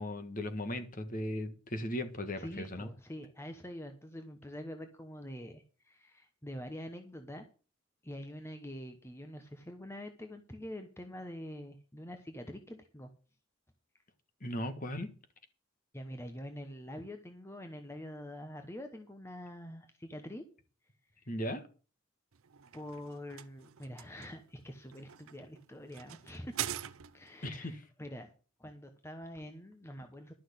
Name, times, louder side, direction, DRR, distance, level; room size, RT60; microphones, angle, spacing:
voice 1, 0.0-2.9 14.4-15.1 21.3-21.6 27.4-27.8, left 1 dB, 40° left, 1.6 m, -37 dB
voice 2, 2.4-7.4 8.0-13.1 15.9-20.4 21.2-21.3 22.7-26.6 27.1-28.3 28.6-30.3, equal, 10° left, 1.0 m, -45 dB
sound 1, 22.3-27.4, right 10 dB, 85° right, 0.7 m, -44 dB
12.0 x 6.3 x 7.9 m
head